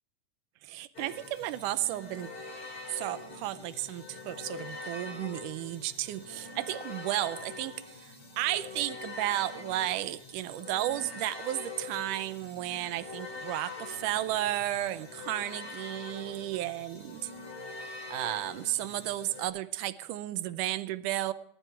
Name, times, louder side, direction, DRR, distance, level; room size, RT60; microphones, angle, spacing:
voice 1, 0.6-2.3 2.9-17.3 18.1-21.3, right 14 dB, 90° right, 13 dB, 2.3 m, -33 dB
sound 1, 0.9-19.5, left 3 dB, 40° left, 7.1 m, -44 dB
19.5 x 12.0 x 4.5 m, 0.71 s
omnidirectional pair, 3.5 m